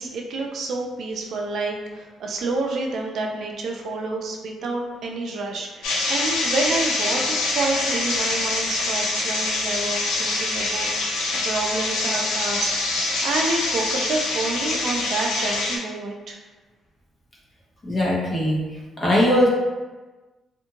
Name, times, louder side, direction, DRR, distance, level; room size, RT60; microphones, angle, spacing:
voice 1, 0.0-11.1 11.4-16.4, right 3 dB, 65° right, 1 dB, 0.4 m, -28 dB
sound 1, 5.8-15.8, left 2 dB, 90° left, 0.5 m, -25 dB
voice 2, 17.8-18.6 19.0-19.5, left 1 dB, 35° left, -5 dB, 1.0 m, -19 dB
2.6 x 2.5 x 2.8 m, 1.2 s
cardioid pair, 90°, 0 cm